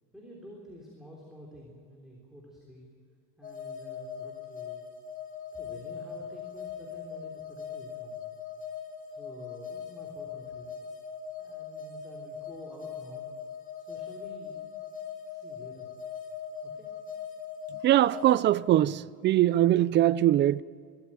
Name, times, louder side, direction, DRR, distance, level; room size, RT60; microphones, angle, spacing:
voice 1, 0.1-2.9 3.4-4.8 5.5-8.2 9.1-10.8 11.4-13.3 13.8-14.9 15.3-15.9 16.6-16.9, equal, ahead, 3.5 m, -49 dB
sound 1, 3.4-18.4, left 7 dB, 25° left, 5.7 m, -40 dB
voice 2, 17.8-20.6, right 13 dB, 35° right, 0.4 m, -22 dB
22.5 x 14.5 x 9.0 m
cardioid pair, 150°, 31 cm